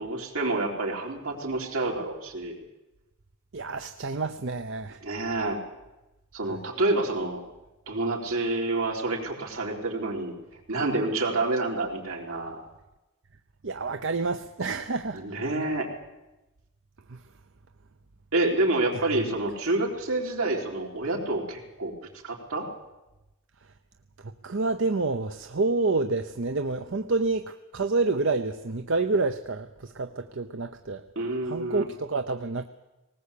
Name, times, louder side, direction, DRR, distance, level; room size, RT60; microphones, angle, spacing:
voice 1, 0.0-2.6 5.0-5.6 6.3-7.4 7.9-10.3 10.7-12.6 15.1-15.9 18.3-21.9 22.2-22.7 31.2-31.8, right 2 dB, 80° right, -1 dB, 4.1 m, -28 dB
voice 2, 3.5-5.0 13.6-15.2 17.1-17.2 24.2-31.0 31.5-32.7, right 3 dB, 60° right, 8 dB, 0.8 m, -28 dB
19.5 x 19.0 x 8.5 m, 1.0 s
head